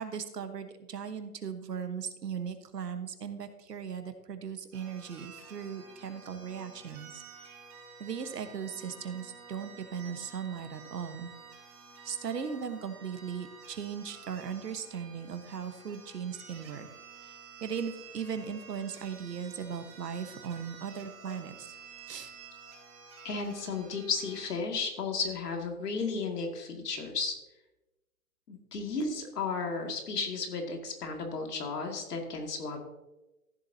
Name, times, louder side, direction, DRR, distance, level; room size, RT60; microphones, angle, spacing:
voice 1, 0.0-7.2 8.0-11.3 12.0-16.9 17.2-21.7 22.1-22.3, right 7 dB, 90° right, 9 dB, 1.3 m, -38 dB
sound 1, 4.7-24.5, right 5 dB, 35° right, 3.4 m, -51 dB
voice 2, 23.2-27.4 28.5-32.8, left 4 dB, 80° left, 3 dB, 2.4 m, -34 dB
14.0 x 7.4 x 2.8 m, 1.0 s
hypercardioid pair, 140°, 46 cm